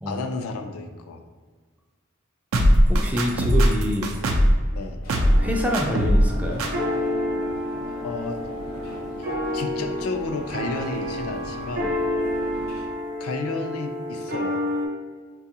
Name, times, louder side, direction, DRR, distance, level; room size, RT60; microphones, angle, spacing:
voice 1, 0.1-1.2 4.7-5.0 8.0-8.4 9.2-9.3 9.5-12.0 13.2-14.6, left 3 dB, 90° left, 5 dB, 0.4 m, -32 dB
sound 1, 2.5-4.6 5.1-5.5 5.7-6.3 6.6-6.7, equal, 80° right, 0.5 m, -18 dB
voice 2, 2.9-4.1 5.4-6.7, equal, 5° right, 0 dB, 0.3 m, -26 dB
sound 2, 5.0-12.9, left 1 dB, 70° left, 0.8 m, -39 dB
sound 3, 5.3-14.9, left 1 dB, 45° right, 0.8 m, -29 dB
4.6 x 2.3 x 2.7 m, 1.5 s
head